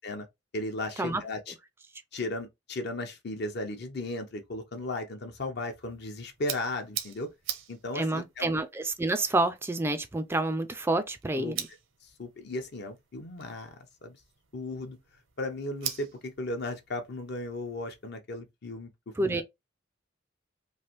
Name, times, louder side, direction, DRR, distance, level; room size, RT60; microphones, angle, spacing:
voice 1, 0.5-1.5 2.1-7.3 7.7-8.5 11.3-11.6 12.2-13.7 14.0-14.2 14.5-15.0 15.4-18.9 19.2-19.4, left 2 dB, 60° left, 0.7 m, -36 dB
sound 1, 5.8-18.1, right 10 dB, 80° right, 0.7 m, -44 dB
voice 2, 8.0-11.6 19.2-19.4, right 2 dB, 10° right, 0.3 m, -28 dB
3.2 x 2.5 x 2.9 m
head